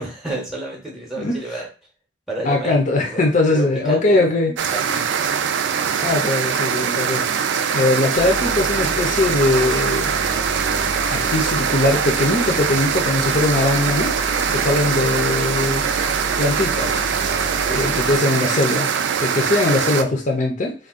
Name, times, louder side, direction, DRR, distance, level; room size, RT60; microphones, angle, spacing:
voice 1, 0.0-1.7 2.3-4.3 4.7-5.1, right 2 dB, ahead, -1 dB, 0.8 m, -31 dB
voice 2, 2.4-4.5 6.0-7.2 7.7-10.2 11.1-14.2 14.5-15.9 16.4-17.0 17.7-18.9 19.2-20.7, left 2 dB, 45° left, 1 dB, 0.6 m, -20 dB
sound 1, 4.6-20.0, right 7 dB, 70° right, 0.3 m, -22 dB
sound 2, 8.1-18.2, equal, 85° left, 0.9 m, -31 dB
2.5 x 2.3 x 3.5 m, 0.33 s
head